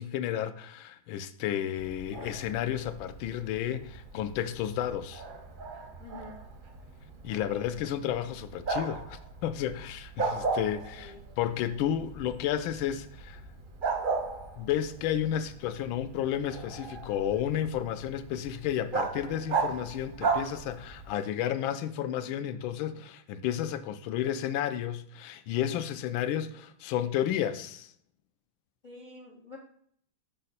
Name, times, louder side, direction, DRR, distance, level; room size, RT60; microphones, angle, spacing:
voice 1, 0.0-5.2 7.2-13.4 14.6-27.9, left 10 dB, 90° left, 1.4 m, -32 dB
Bark, 1.8-21.1, right 4 dB, 50° right, 0.6 m, -37 dB
voice 2, 6.0-6.4 7.3-7.7 11.0-11.2 28.8-29.6, left 2 dB, 65° left, 0.4 m, -48 dB
6.5 x 5.4 x 4.1 m
omnidirectional pair, 2.1 m